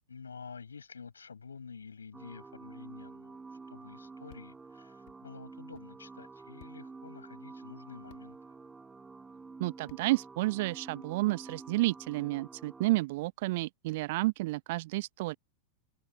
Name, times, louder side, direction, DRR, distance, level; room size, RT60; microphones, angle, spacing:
voice 1, 0.1-8.6, left 5 dB, 75° left, 7.5 m, -49 dB
sound 1, 2.1-12.9, right 4 dB, 10° right, 7.1 m, -49 dB
sound 2, 4.3-4.5 5.1-5.2 5.7-5.9 6.6-6.8 8.1-8.2 9.9-10.1, left 22 dB, 50° left, 2.0 m, -57 dB
voice 2, 9.6-15.4, right 20 dB, 50° right, 0.7 m, -31 dB
figure-of-eight pair, 90°, 0 cm